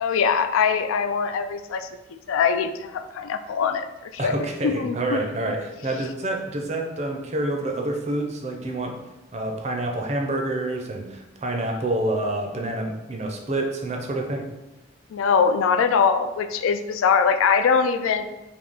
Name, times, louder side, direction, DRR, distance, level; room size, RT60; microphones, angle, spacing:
voice 1, 0.0-1.9 2.3-3.9 4.2-4.3 4.8-5.2 15.1-18.2, left 6 dB, 85° left, 9 dB, 0.3 m, -22 dB
voice 2, 4.2-9.0 9.3-14.4, right 1 dB, 35° right, 2 dB, 0.5 m, -27 dB
3.5 x 2.7 x 3.9 m, 1.0 s
head